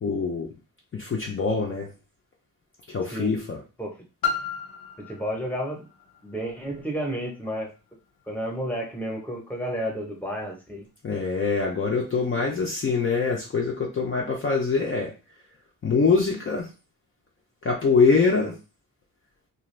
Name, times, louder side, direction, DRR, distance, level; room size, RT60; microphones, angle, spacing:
voice 1, 0.0-0.5 0.9-1.9 2.9-3.6 11.0-15.1 15.8-16.7 17.6-18.5, left 4 dB, 35° left, -1 dB, 0.5 m, -24 dB
Piano, 4.2-9.7 10.4-10.5, left 5 dB, 75° left, 0.7 m, -36 dB
voice 2, 5.1-5.9 6.2-7.7 8.3-10.9 18.4-18.5, equal, 5° left, 0 dB, 0.8 m, -31 dB
2.5 x 2.3 x 3.1 m, 0.31 s
wide cardioid pair, 125°, 36 cm